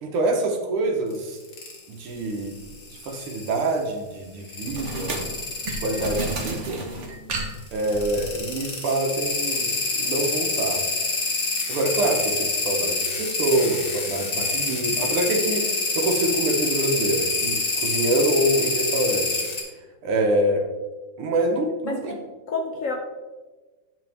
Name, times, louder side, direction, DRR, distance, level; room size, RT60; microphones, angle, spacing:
voice 1, 0.0-1.4 1.9-2.6 2.9-5.2 5.8-6.8 7.7-9.7 10.0-10.8 11.7-19.4 20.0-20.7 21.2-22.1, right 2 dB, 85° right, 2 dB, 2.0 m, -25 dB
sound 1, 1.1-1.8 2.4-3.7 4.4-6.6 7.7-19.6, left 3 dB, 50° left, 2.1 m, -26 dB
sound 2, 2.6-2.8 4.7-8.4, right 2 dB, 40° right, 1.2 m, -32 dB
voice 2, 21.8-22.9, left 3 dB, 70° left, 3 dB, 0.7 m, -30 dB
9.9 x 6.1 x 3.4 m, 1.3 s
omnidirectional pair, 2.4 m